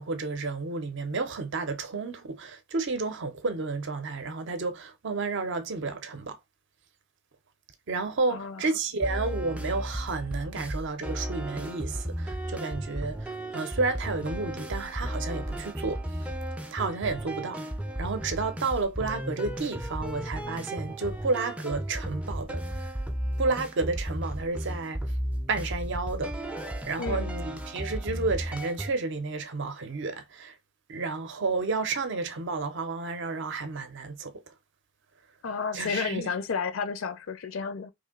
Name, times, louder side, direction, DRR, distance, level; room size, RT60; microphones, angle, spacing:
voice 1, 0.0-6.4 7.9-16.0 16.7-17.6 18.0-22.9 23.4-25.0 25.5-26.3 26.9-30.6 30.9-34.3 35.7-36.3, right 3 dB, 55° right, 0.5 m, -31 dB
voice 2, 8.3-8.6 27.0-27.3 35.4-37.9, left 5 dB, 65° left, 0.4 m, -31 dB
sound 1, 9.0-28.9, right 1 dB, 5° right, 0.4 m, -34 dB
3.0 x 2.6 x 3.6 m
head